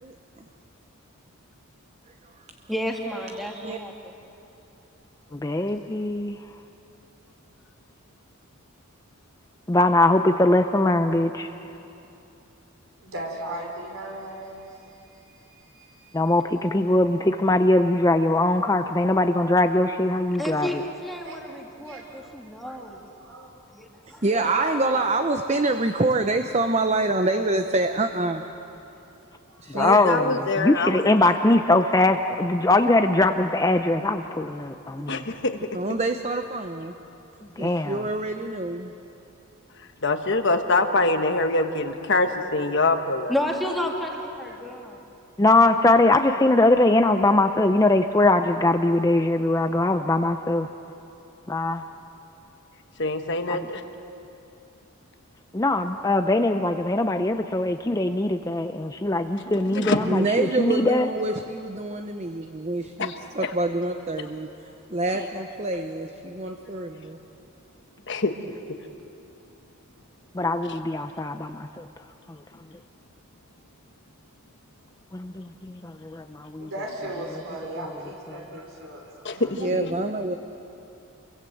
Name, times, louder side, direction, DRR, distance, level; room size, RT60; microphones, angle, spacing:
voice 1, 0.0-0.4 3.3-3.8 24.2-28.4 29.6-30.4 35.7-36.9 37.6-38.9 59.7-64.5 64.9-67.2 79.5-80.3, right 2 dB, 30° right, 7 dB, 0.8 m, -26 dB
voice 2, 2.7-4.1 20.4-23.0 23.7-24.5 43.3-45.0, left 1 dB, ahead, -1 dB, 2.3 m, -31 dB
voice 3, 5.3-6.4 9.7-11.5 16.1-20.8 29.8-35.2 37.6-38.0 45.4-50.7 51.5-51.8 53.5-53.6 55.5-61.1 70.3-71.8 75.1-76.7, left 2 dB, 15° left, 7 dB, 0.5 m, -21 dB
voice 4, 13.0-16.4 20.1-20.2 21.2-21.4 21.8-22.0 22.6-22.8 23.2-23.5 24.0-25.7 26.6-27.0 29.5-29.9 35.9-36.5 38.0-38.2 43.4-44.2 44.5-44.6 60.7-60.9 61.2-61.4 62.3-62.5 62.7-62.9 65.0-65.2 65.7-65.9 66.4-66.9 76.6-79.7, right 1 dB, 60° right, 1 dB, 4.9 m, -38 dB
voice 5, 29.7-31.0 35.1-35.6 39.8-43.3 53.0-53.8 59.6-60.0 63.0-63.5 68.1-68.3 79.2-80.0, left 2 dB, 55° left, 6 dB, 1.3 m, -25 dB
28.0 x 23.0 x 7.8 m, 2.8 s
head